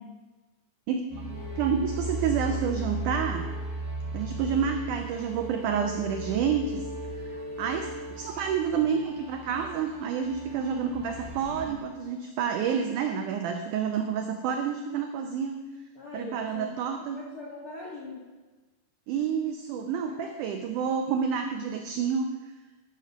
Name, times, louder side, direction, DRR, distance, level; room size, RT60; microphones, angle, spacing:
sound 1, 1.1-11.7, right 2 dB, 5° left, 3.2 m, -37 dB
sound 2, 1.3-3.9 5.1-8.4, left 1 dB, 40° left, 2.8 m, -42 dB
voice 1, 1.6-3.5 4.1-6.9 7.2-7.3 7.6-15.6 16.1-17.2 19.1-22.3, right 7 dB, 85° right, 5 dB, 1.8 m, -29 dB
voice 2, 15.9-18.3 20.0-20.4, left 3 dB, 70° left, -4 dB, 1.2 m, -42 dB
12.0 x 5.9 x 6.0 m, 1.3 s
omnidirectional pair, 4.3 m